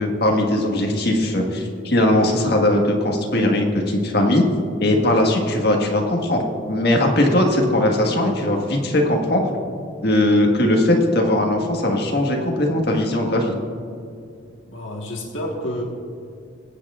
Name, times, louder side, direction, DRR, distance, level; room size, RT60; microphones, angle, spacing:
voice 1, 0.0-4.4 4.8-6.4 6.7-9.5 10.0-13.5, left 1 dB, 55° left, 1 dB, 1.6 m, -19 dB
voice 2, 14.7-15.8, left 1 dB, 75° left, -1 dB, 1.5 m, -29 dB
22.0 x 8.5 x 2.4 m, 2.4 s
head